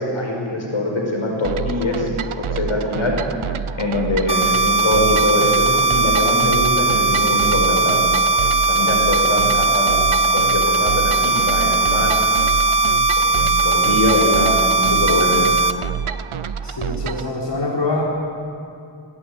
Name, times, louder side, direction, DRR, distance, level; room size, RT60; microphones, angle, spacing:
voice 1, 0.0-3.2 3.8-8.0 8.6-12.2 13.2-15.4, left 1 dB, 90° left, 0 dB, 5.3 m, -23 dB
sound 1, 1.4-17.3, right 8 dB, 85° right, 0.8 m, -28 dB
sound 2, 4.3-15.7, right 3 dB, 10° right, 1.2 m, -18 dB
voice 2, 16.6-18.0, left 2 dB, 60° left, -4 dB, 4.1 m, -25 dB
23.0 x 17.5 x 9.0 m, 2.4 s
wide cardioid pair, 70°, 48 cm